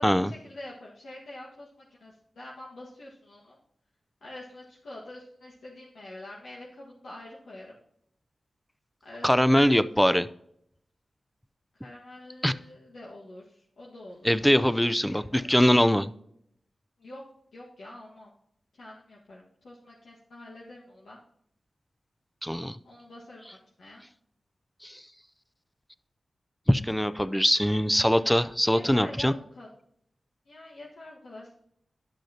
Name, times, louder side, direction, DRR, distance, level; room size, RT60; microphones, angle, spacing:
voice 1, 0.0-3.6 4.2-7.7 9.0-9.8 11.7-14.3 14.6-15.4 17.0-17.2 17.5-18.3 18.7-21.2 22.8-24.0 28.7-29.7 30.4-31.5, left 1 dB, 80° left, 1.5 m, -46 dB
voice 2, 9.2-10.3 12.4-12.5 14.2-16.1 22.4-22.8 24.8-25.0 26.7-29.3, equal, 5° left, 0.5 m, -22 dB
11.5 x 6.3 x 2.8 m
cardioid pair, 55°, 0 cm